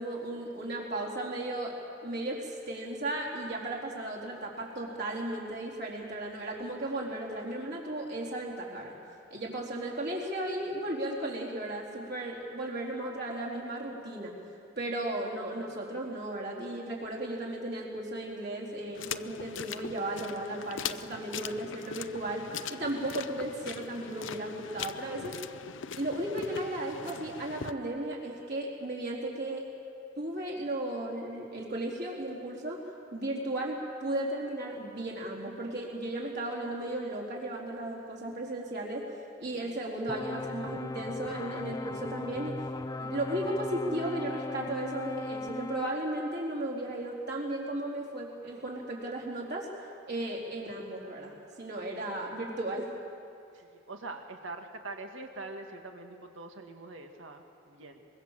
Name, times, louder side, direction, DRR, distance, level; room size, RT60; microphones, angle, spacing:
voice 1, 0.0-1.8 2.0-9.0 9.3-14.3 14.8-25.4 26.0-29.7 30.2-32.8 33.1-39.1 39.4-42.6 43.0-49.7 50.1-52.9, right 1 dB, 60° right, -2 dB, 4.2 m, -35 dB
sound 1, 18.9-27.7, left 7 dB, 70° left, 0.7 m, -41 dB
sound 2, 40.1-45.9, left 2 dB, 20° left, 0.6 m, -38 dB
voice 2, 53.5-58.1, right 2 dB, 85° right, 4 dB, 2.0 m, -44 dB
23.5 x 23.0 x 7.5 m, 2.6 s
head